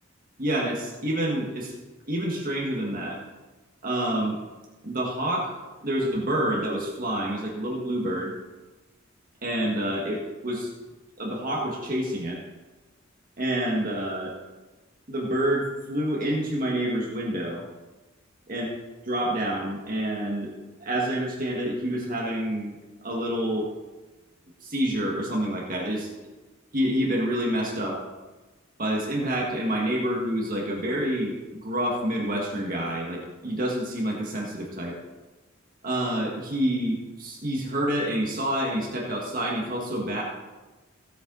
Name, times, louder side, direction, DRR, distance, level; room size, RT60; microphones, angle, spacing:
voice 1, 0.4-1.7 2.1-3.2 3.8-4.4 4.8-8.4 9.4-10.7 11.2-12.4 13.4-14.3 15.1-17.7 18.5-18.7 19.0-20.5 20.8-22.7 23.0-23.7 24.6-26.1 26.7-28.0 28.8-35.0 35.8-40.2, right 1 dB, 40° right, -2 dB, 1.8 m, -28 dB
16.5 x 7.8 x 4.0 m, 1.2 s
head